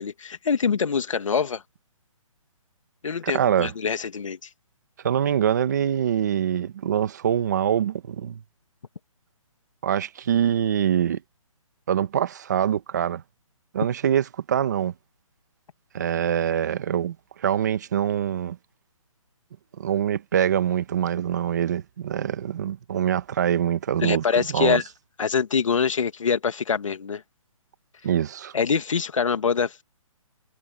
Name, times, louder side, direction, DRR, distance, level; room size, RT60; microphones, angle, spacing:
voice 1, 0.0-1.6 3.0-4.4 24.0-24.8 25.2-27.2 28.5-29.8, left 6 dB, 65° left, 2.2 m, -24 dB
voice 2, 3.2-3.7 5.0-8.4 9.8-11.2 11.9-13.2 13.7-14.9 15.9-18.6 19.8-24.8 28.0-28.5, right 9 dB, 30° right, 1.6 m, -24 dB
hypercardioid pair, 175°, 18 cm